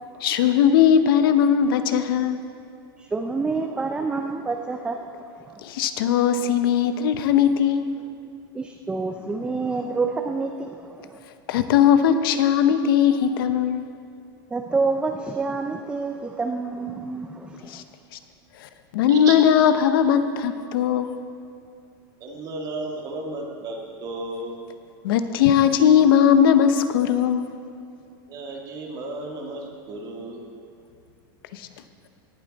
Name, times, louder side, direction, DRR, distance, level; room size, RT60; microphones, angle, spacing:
voice 1, 0.2-2.5 5.6-7.9 11.5-13.9 17.6-17.8 18.6-21.2 25.0-27.5 31.5-31.7, left 8 dB, 70° left, 10 dB, 0.7 m, -19 dB
voice 2, 3.0-5.6 8.5-11.2 14.5-17.8, right 4 dB, 10° right, 4 dB, 0.4 m, -28 dB
voice 3, 22.2-24.6 28.3-30.4, right 2 dB, 30° right, 1 dB, 1.6 m, -34 dB
18.0 x 7.8 x 4.0 m, 2.4 s
supercardioid pair, 155°, 12 cm